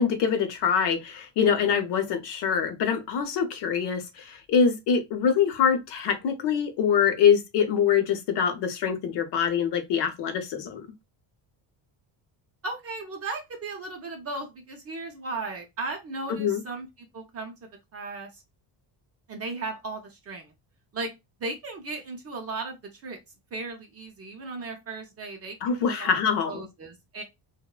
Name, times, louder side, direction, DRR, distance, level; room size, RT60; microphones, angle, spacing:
voice 1, 0.0-10.9 16.3-16.6 25.6-26.6, left 7 dB, 65° left, 0.6 m, -24 dB
voice 2, 12.6-17.5 17.9-18.4 19.3-20.5 20.9-21.1 21.4-23.2 23.5-26.1 26.5-27.2, right 3 dB, 35° right, 0.5 m, -36 dB
3.0 x 2.0 x 2.3 m
cardioid pair, 170°, 46 cm